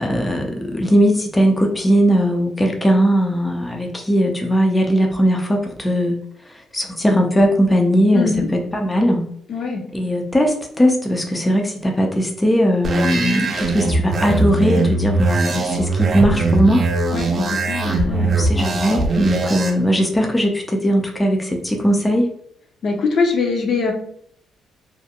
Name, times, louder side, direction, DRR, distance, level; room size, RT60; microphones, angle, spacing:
voice 1, 0.0-6.2 6.5-8.3 8.7-9.2 9.9-16.9 17.9-22.3, equal, 15° left, 2 dB, 0.4 m, -19 dB
voice 2, 8.1-8.5 9.5-9.8 17.1-18.3 22.8-23.9, left 4 dB, 60° left, 2 dB, 0.6 m, -22 dB
sound 1, 12.8-19.7, right 3 dB, 45° right, 0.5 m, -20 dB
2.4 x 2.1 x 2.7 m, 0.67 s
cardioid pair, 90°, 0 cm